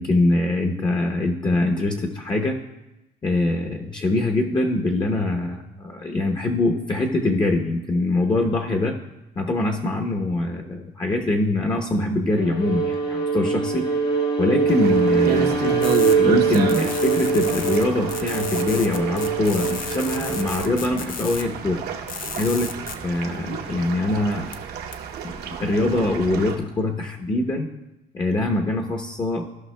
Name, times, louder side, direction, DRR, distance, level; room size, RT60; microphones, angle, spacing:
voice 1, 0.0-2.6 3.2-8.9 9.4-13.9 14.4-21.8 22.4-22.8 23.0-24.5 25.5-27.7 28.1-29.5, left 2 dB, 25° left, 2 dB, 0.8 m, -23 dB
Bowed string instrument, 12.3-20.7, right 4 dB, 70° left, 1.9 m, -23 dB
sound 1, 14.7-26.6, right 7 dB, 75° right, 0.9 m, -31 dB
sound 2, 15.8-16.1 16.5-17.8 18.1-21.4 22.1-22.9 24.5-24.6 24.9-25.0, left 7 dB, 55° left, 0.6 m, -34 dB
14.5 x 5.5 x 2.2 m, 0.94 s
cardioid pair, 110°, 17 cm